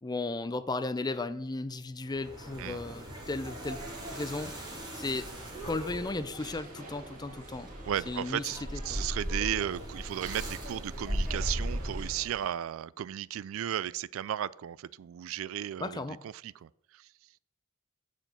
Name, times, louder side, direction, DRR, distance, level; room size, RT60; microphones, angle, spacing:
voice 1, 0.0-3.8 4.1-4.5 4.9-5.3 5.6-7.7 8.1-8.4 8.7-9.1 15.8-16.2, left 2 dB, 20° left, 0.5 m, -35 dB
sound 1, 2.0-12.4, equal, 20° right, 3.1 m, -38 dB
sound 2, 3.7-12.5, right 4 dB, 40° right, 1.9 m, -52 dB
voice 2, 7.9-17.1, right 10 dB, 70° right, 0.3 m, -35 dB
8.8 x 5.1 x 7.8 m
head